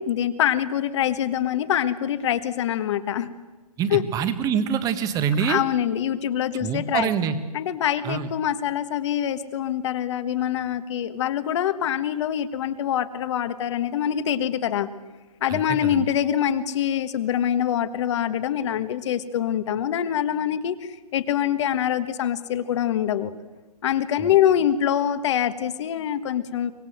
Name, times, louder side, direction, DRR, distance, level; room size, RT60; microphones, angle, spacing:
voice 1, 0.0-3.3 3.9-4.0 5.4-7.1 7.5-14.9 15.4-23.3 23.8-26.7, left 10 dB, 45° left, 11 dB, 1.5 m, -24 dB
voice 2, 3.8-5.6 6.6-7.4 8.0-8.3 15.5-16.0 24.2-24.3, right 7 dB, 20° right, 11 dB, 1.4 m, -25 dB
24.0 x 19.5 x 7.9 m, 1.2 s
hypercardioid pair, 145°, 20 cm